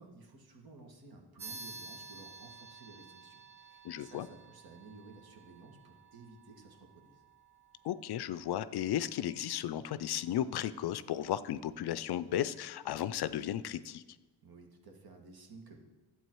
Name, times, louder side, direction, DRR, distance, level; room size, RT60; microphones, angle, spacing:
voice 1, 0.0-7.2 14.4-15.8, right 3 dB, 55° right, 3 dB, 1.9 m, -54 dB
sound 1, 1.4-11.4, right 4 dB, 90° right, 2.3 m, -53 dB
voice 2, 3.8-4.3 7.8-14.0, left 11 dB, 60° left, 15 dB, 0.5 m, -35 dB
11.5 x 8.1 x 4.6 m, 1.2 s
cardioid pair, 90°, 43 cm